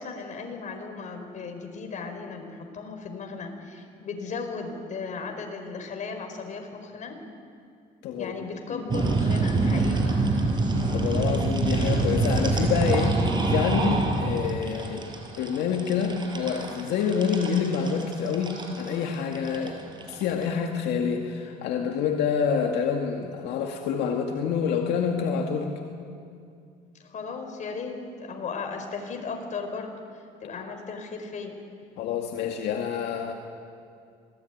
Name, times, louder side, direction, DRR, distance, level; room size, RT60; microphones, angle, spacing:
voice 1, 0.0-7.2 8.2-10.2 27.0-31.6, left 4 dB, 45° left, 4 dB, 4.8 m, -36 dB
sound 1, 8.9-20.4, right 3 dB, 25° right, 5.0 m, -26 dB
voice 2, 10.9-15.1 15.4-19.8 20.1-25.7 32.0-33.3, left 6 dB, 80° left, 2 dB, 2.1 m, -27 dB
26.0 x 19.5 x 9.4 m, 2.3 s
cardioid pair, 110°, 17 cm